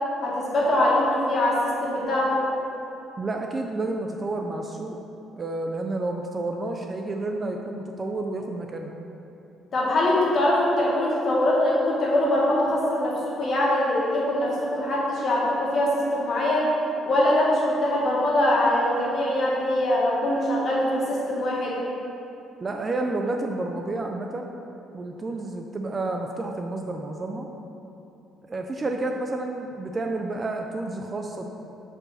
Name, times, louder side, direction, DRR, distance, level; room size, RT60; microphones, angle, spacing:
voice 1, 0.2-2.4 9.7-16.7 17.1-21.8, left 1 dB, 40° left, -5 dB, 1.6 m, -23 dB
voice 2, 3.2-5.0 5.4-9.0 22.6-24.5 24.9-27.5 28.4-31.4, right 2 dB, 25° right, 3 dB, 0.3 m, -30 dB
4.9 x 4.7 x 6.2 m, 2.9 s
cardioid pair, 155°, 0 cm